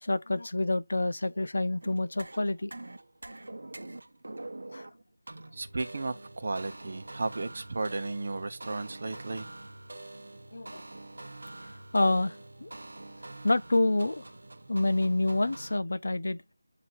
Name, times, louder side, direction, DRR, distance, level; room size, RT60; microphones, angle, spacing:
voice 1, 0.0-2.7 4.7-4.9 10.5-10.8 11.9-12.7 13.4-14.2 14.7-16.4, left 2 dB, 65° left, 0.7 m, -27 dB
sound 1, 1.8-15.8, right 2 dB, 70° right, 1.0 m, -45 dB
voice 2, 5.5-9.5, right 3 dB, 45° right, 0.9 m, -34 dB
8.1 x 2.9 x 4.5 m
figure-of-eight pair, 170°, 0 cm